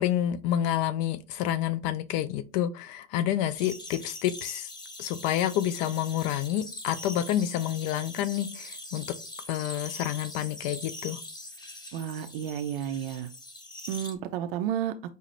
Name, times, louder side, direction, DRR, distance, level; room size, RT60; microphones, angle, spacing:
voice 1, 0.0-4.7 5.0-9.1 9.5-11.2, left 11 dB, 40° left, 0.4 m, -29 dB
sound 1, 3.6-14.1, left 2 dB, 10° left, 0.8 m, -42 dB
voice 2, 11.9-13.3 13.9-14.9, right 10 dB, 50° right, 0.5 m, -31 dB
5.4 x 2.1 x 3.1 m
figure-of-eight pair, 85°, 36 cm